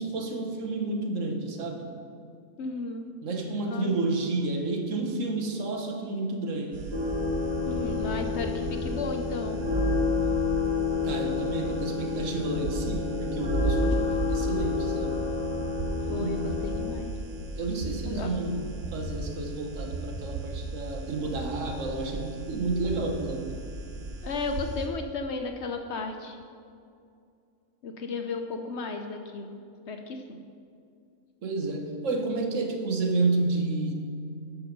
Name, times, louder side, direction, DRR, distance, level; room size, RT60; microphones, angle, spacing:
voice 1, 0.0-1.9 3.2-6.9 11.0-15.2 16.0-16.6 17.6-23.5 31.4-33.9, right 3 dB, 65° right, 4 dB, 1.3 m, -30 dB
voice 2, 2.6-3.1 3.7-3.9 7.6-9.6 16.1-17.1 18.0-18.3 24.2-26.4 27.8-29.6 29.9-30.4, left 3 dB, 60° left, 5 dB, 0.9 m, -34 dB
sound 1, 6.7-24.9, right 2 dB, 80° right, 1.6 m, -37 dB
sound 2, 6.9-16.9, left 3 dB, 30° right, 2.1 m, -29 dB
12.0 x 6.2 x 5.3 m, 2.4 s
omnidirectional pair, 1.5 m